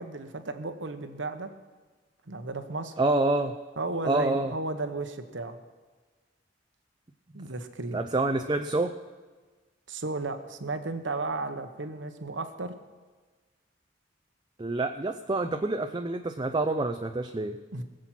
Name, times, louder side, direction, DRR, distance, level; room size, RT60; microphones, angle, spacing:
voice 1, 0.0-1.5 2.3-2.9 3.8-5.6 7.3-8.0 9.9-12.7 17.7-17.8, right 3 dB, 80° right, 8 dB, 1.1 m, -34 dB
voice 2, 3.0-3.5 4.0-4.5 7.9-8.9 14.6-17.6, right 2 dB, 25° right, 6 dB, 0.5 m, -27 dB
20.5 x 7.6 x 6.0 m, 1.4 s
head